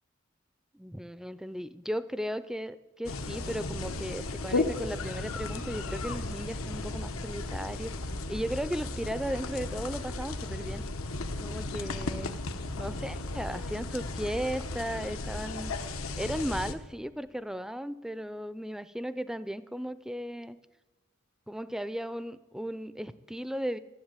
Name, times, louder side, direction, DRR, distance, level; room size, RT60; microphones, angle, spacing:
voice 1, 0.7-8.0 8.3-10.9 11.4-12.3 12.8-15.8 16.2-20.6 21.5-23.8, equal, 5° right, 14 dB, 0.4 m, -36 dB
sound 1, 3.1-16.7, left 2 dB, 85° left, 1.0 m, -35 dB
13.5 x 7.9 x 9.0 m, 1.2 s
head